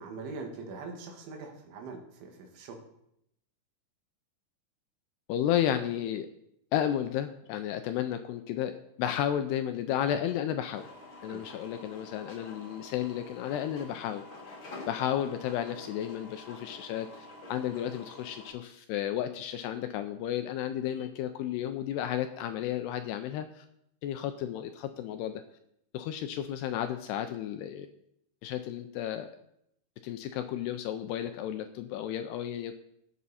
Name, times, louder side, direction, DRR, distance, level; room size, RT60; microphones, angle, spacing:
voice 1, 0.0-2.8 11.3-11.4, right 4 dB, 90° right, 2 dB, 4.2 m, -42 dB
voice 2, 5.3-6.3 6.7-10.9 11.2-14.2 14.9-23.7 24.0-25.4 25.9-27.9 28.4-29.3 30.0-32.7, left 10 dB, 80° left, 8 dB, 2.4 m, -33 dB
sound 1, 10.7-18.5, left 2 dB, 45° left, 1.7 m, -48 dB
18.0 x 7.5 x 4.2 m, 0.77 s
omnidirectional pair, 5.2 m